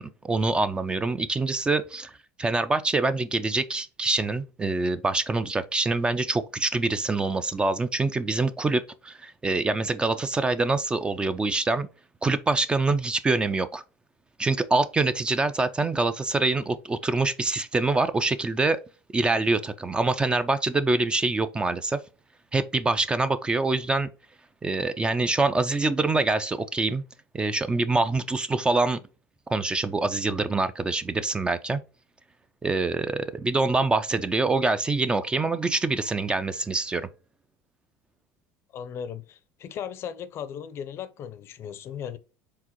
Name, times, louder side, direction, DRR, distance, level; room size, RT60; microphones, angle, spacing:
voice 1, 0.0-2.1 2.4-11.9 12.2-13.8 14.4-18.8 19.1-22.0 22.5-24.1 24.6-27.0 27.3-29.0 29.5-31.8 32.6-37.1, right 3 dB, 15° right, 0.3 m, -25 dB
voice 2, 38.7-42.2, left 8 dB, 45° left, 0.5 m, -37 dB
4.7 x 3.6 x 2.9 m
supercardioid pair, 110°, 6 cm